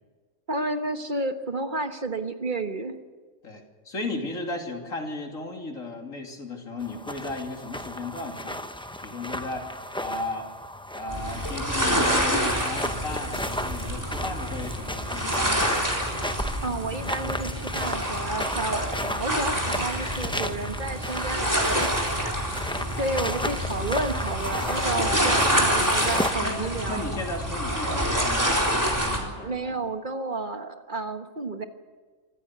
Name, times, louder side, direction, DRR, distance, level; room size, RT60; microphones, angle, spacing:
voice 1, 0.5-3.0 16.6-21.9 22.2-22.3 23.0-27.1 29.4-31.6, right 2 dB, 40° right, 7 dB, 1.5 m, -31 dB
voice 2, 3.4-8.7 9.0-10.5 10.9-15.8 22.9-23.6 24.8-25.3 26.4-29.8, left 2 dB, 80° left, 3 dB, 3.2 m, -35 dB
sound 1, 6.8-26.3, left 1 dB, 5° left, 0.7 m, -35 dB
sound 2, 11.1-29.2, equal, 15° right, 4.0 m, -27 dB
24.5 x 15.5 x 8.2 m, 1.5 s
omnidirectional pair, 1.4 m